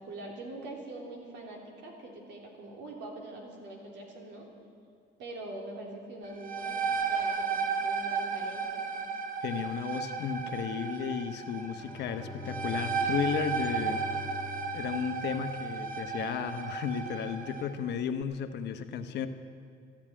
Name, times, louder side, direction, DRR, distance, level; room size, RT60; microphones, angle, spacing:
voice 1, 0.0-4.5 5.2-8.9, right 2 dB, 70° right, 0 dB, 3.3 m, -43 dB
sound 1, 6.2-17.7, right 5 dB, 50° right, 1.1 m, -34 dB
voice 2, 9.4-14.0 14.7-19.3, left 7 dB, 65° left, 8 dB, 1.0 m, -34 dB
Bowed string instrument, 11.6-16.2, left 5 dB, ahead, 1.9 m, -44 dB
14.0 x 10.5 x 8.9 m, 2.3 s
cardioid pair, 110°, 19 cm